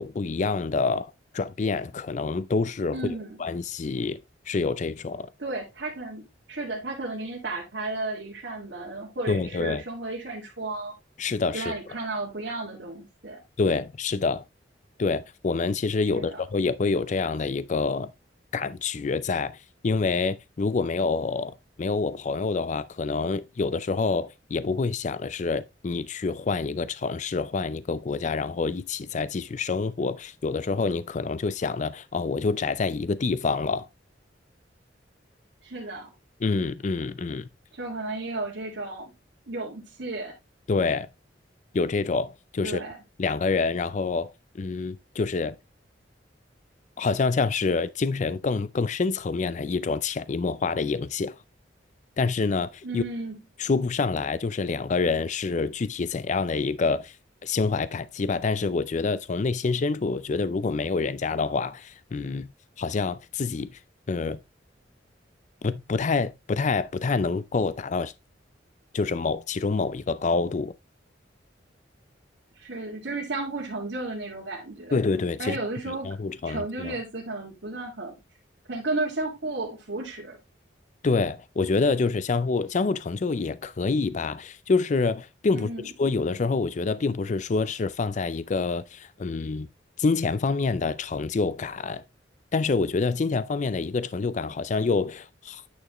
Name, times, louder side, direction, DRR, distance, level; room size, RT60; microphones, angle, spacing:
voice 1, 0.0-3.0 3.4-4.2 4.5-5.3 9.3-9.8 11.2-11.7 13.6-14.4 15.0-18.1 18.5-19.6 19.8-33.8 36.4-37.5 40.7-41.1 41.7-42.8 43.2-45.6 47.0-51.4 52.2-53.0 53.6-57.2 57.4-62.5 62.8-63.7 64.1-64.4 65.6-68.1 68.9-70.7 74.9-75.6 76.0-76.9 81.0-85.7 86.0-89.7 90.0-92.0 92.5-95.6, left 4 dB, 40° left, 0.4 m, -27 dB
voice 2, 2.9-3.4 5.4-10.9 11.5-13.4 16.1-16.4 35.6-36.1 37.7-39.1 39.5-40.3 42.6-43.0 52.8-53.4 72.6-75.0 75.4-76.2 76.4-78.1 78.7-80.4 85.5-85.9, right 2 dB, 70° right, 2.1 m, -33 dB
9.4 x 6.1 x 3.0 m
head